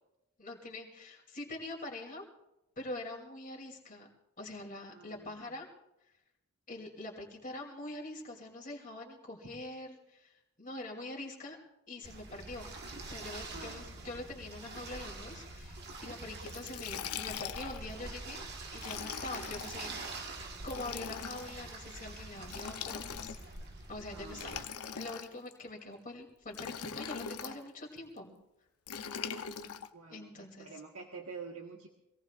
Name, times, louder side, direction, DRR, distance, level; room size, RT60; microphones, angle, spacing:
voice 1, 0.4-2.3 2.8-4.1 4.4-5.7 6.7-11.6 11.9-12.7 13.0-18.4 18.7-19.9 20.6-23.4 23.9-24.6 24.9-28.3 30.1-30.7, left 2 dB, 40° left, 0 dB, 3.0 m, -44 dB
voice 2, 4.9-5.3 13.5-13.9 24.1-24.7 29.9-31.9, right 4 dB, 70° right, 1 dB, 1.4 m, -47 dB
sound 1, 12.0-24.6, right 2 dB, 50° right, 1.6 m, -45 dB
Liquid, 16.5-17.9 18.7-19.8 20.6-21.5 22.5-23.6 24.3-25.5 26.5-27.6 28.9-29.9, left 7 dB, 90° left, 0.8 m, -41 dB
26.0 x 18.0 x 2.5 m, 0.93 s
head